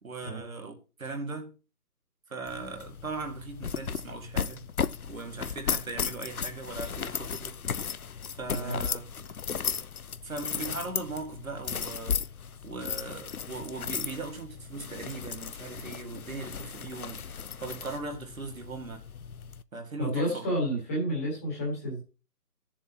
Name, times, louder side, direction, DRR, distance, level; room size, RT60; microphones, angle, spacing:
voice 1, 0.0-1.5 2.3-4.7 5.1-7.6 8.3-9.0 10.2-12.2 12.6-19.0 19.7-20.5, right 3 dB, 60° right, 2.2 m, -39 dB
sound 1, 2.5-19.6, left 7 dB, 65° left, 0.7 m, -35 dB
voice 2, 20.0-22.0, equal, 10° left, 1.8 m, -30 dB
13.5 x 7.2 x 2.9 m
figure-of-eight pair, 160°, 47 cm